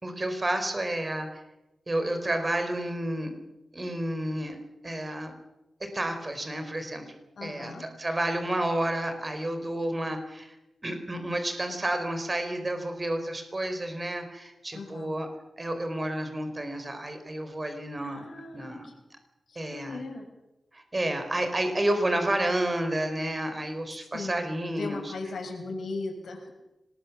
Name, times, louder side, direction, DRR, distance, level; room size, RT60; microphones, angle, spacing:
voice 1, 0.0-1.4 1.9-3.3 3.7-4.6 4.8-5.3 5.8-7.1 7.4-10.6 10.8-15.3 15.6-18.3 18.5-18.9 19.6-20.0 20.7-25.1, right 1 dB, 30° right, 6 dB, 4.5 m, -30 dB
voice 2, 7.4-7.8 14.7-15.1 18.0-18.9 19.5-20.3 24.1-24.5 24.8-26.5, left 3 dB, 80° left, 3 dB, 6.1 m, -38 dB
25.0 x 20.5 x 7.3 m, 0.96 s
wide cardioid pair, 80°, 0 cm